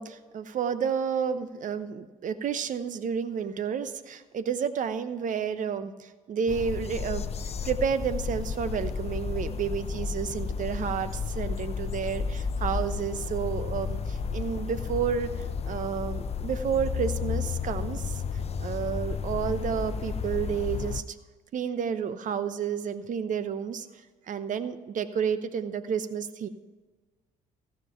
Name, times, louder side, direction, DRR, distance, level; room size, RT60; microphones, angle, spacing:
voice 1, 0.0-7.3 7.6-15.3 15.6-18.2 18.6-21.2 21.5-23.9 24.3-26.5, right 7 dB, 50° right, 12 dB, 0.8 m, -30 dB
sound 1, 6.5-21.0, left 6 dB, 40° left, 0.6 m, -32 dB
16.0 x 5.3 x 5.7 m, 1.4 s
hypercardioid pair, 55°, 17 cm